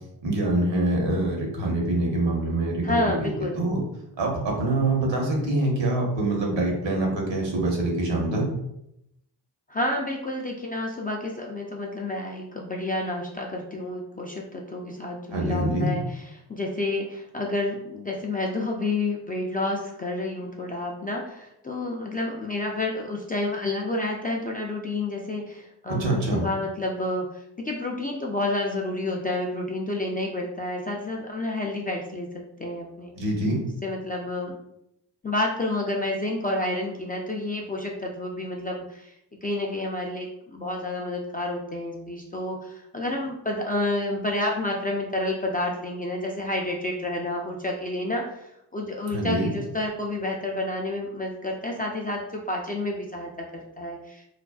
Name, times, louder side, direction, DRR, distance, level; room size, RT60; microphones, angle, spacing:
voice 1, 0.2-3.8 4.2-8.5 15.3-15.9 25.9-26.5 33.2-33.6 49.1-49.5, right 1 dB, 60° right, 0 dB, 1.0 m, -25 dB
voice 2, 2.8-3.6 9.7-16.0 16.5-33.1 33.8-34.6 35.2-39.1 39.4-54.2, left 2 dB, 20° left, -1 dB, 0.3 m, -29 dB
2.5 x 2.2 x 2.3 m, 0.80 s
supercardioid pair, 40°, 49 cm